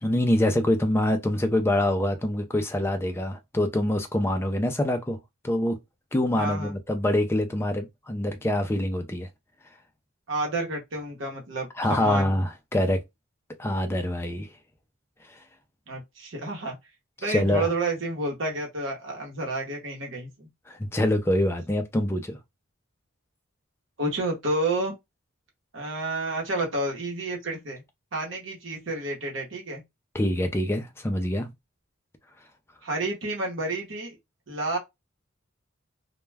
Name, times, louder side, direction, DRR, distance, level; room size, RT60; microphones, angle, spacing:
voice 1, 0.0-5.2 5.4-5.8 6.1-9.3 11.8-13.0 13.6-14.5 17.3-17.7 20.7-22.4 30.1-31.5, left 1 dB, 10° left, 0.3 m, -25 dB
voice 2, 6.3-6.7 10.3-12.3 15.9-16.7 17.2-20.5 24.0-24.9 25.7-27.8 28.1-29.8 32.8-34.2 34.5-34.8, right 2 dB, 60° right, 0.9 m, -30 dB
2.2 x 2.1 x 3.2 m
head